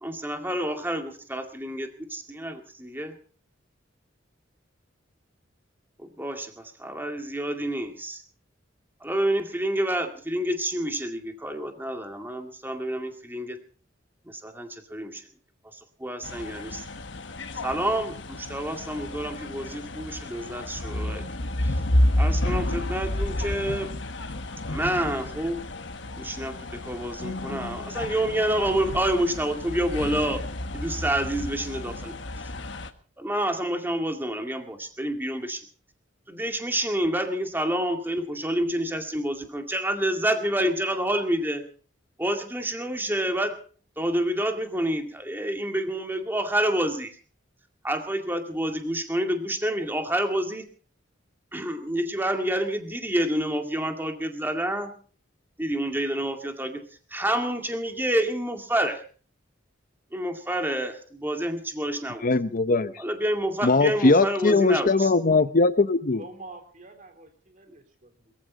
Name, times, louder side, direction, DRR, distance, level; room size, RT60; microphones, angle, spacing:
voice 1, 0.0-3.2 6.0-8.2 9.0-13.6 14.3-15.2 15.7-16.8 17.6-21.3 21.6-21.7 22.2-23.9 24.7-25.6 26.2-32.2 33.2-35.6 36.3-41.7 42.2-43.6 44.0-47.1 47.8-50.6 51.5-54.9 55.6-59.0 60.1-62.2 63.0-65.1, right 1 dB, 10° right, 2.2 m, -28 dB
sound 1, 16.2-32.9, left 1 dB, 65° left, 1.4 m, -30 dB
voice 2, 62.2-62.9 63.6-66.2, left 3 dB, 45° left, 0.8 m, -20 dB
voice 3, 66.2-68.3, right 2 dB, 45° right, 3.6 m, -46 dB
22.0 x 14.5 x 4.0 m
head